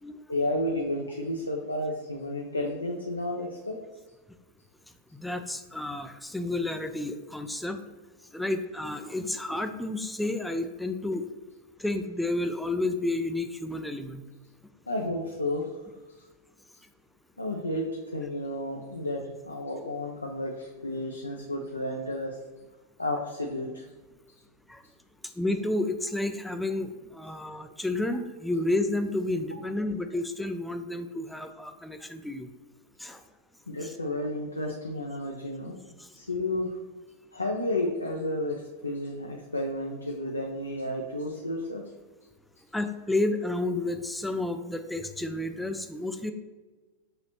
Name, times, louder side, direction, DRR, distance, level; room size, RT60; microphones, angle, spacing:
voice 1, 0.3-3.8 14.9-15.7 17.4-22.4 23.0-23.9 33.7-35.8 36.1-36.8 37.3-41.8, left 1 dB, 80° left, 1 dB, 0.4 m, -32 dB
voice 2, 5.1-7.8 8.3-11.3 11.8-14.2 24.7-24.8 25.4-32.5 33.0-33.2 33.8-33.9 42.7-46.3, left 2 dB, 5° left, 7 dB, 0.4 m, -31 dB
6.2 x 2.9 x 2.9 m, 1.2 s
figure-of-eight pair, 90°, 0 cm